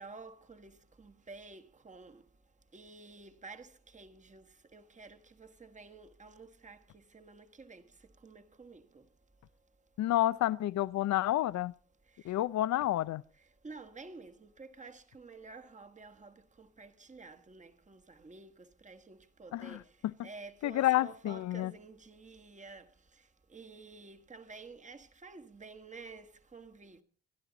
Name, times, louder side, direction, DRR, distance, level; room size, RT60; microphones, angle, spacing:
voice 1, 0.0-2.3 2.7-9.1 12.1-12.4 13.6-20.0 20.2-27.0, right 3 dB, 25° right, 1.4 m, -51 dB
voice 2, 10.0-11.7 12.2-13.2 19.5-20.3 20.6-21.7, left 14 dB, 65° left, 0.6 m, -30 dB
25.5 x 10.0 x 3.9 m
cardioid pair, 90°, 30 cm